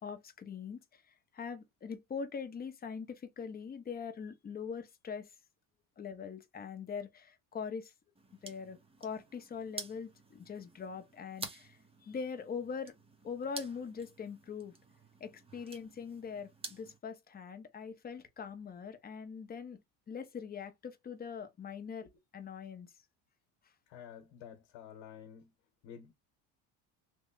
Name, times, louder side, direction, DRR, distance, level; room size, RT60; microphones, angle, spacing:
voice 1, 0.0-5.3 6.0-7.9 8.4-12.9 13.2-14.8 15.2-19.8 20.1-22.9, left 6 dB, 20° left, 0.7 m, -42 dB
sound 1, 8.2-17.0, right 3 dB, 15° right, 0.7 m, -50 dB
voice 2, 23.9-25.5 25.8-26.1, left 8 dB, 80° left, 1.1 m, -50 dB
3.2 x 2.1 x 3.7 m
cardioid pair, 110°, 41 cm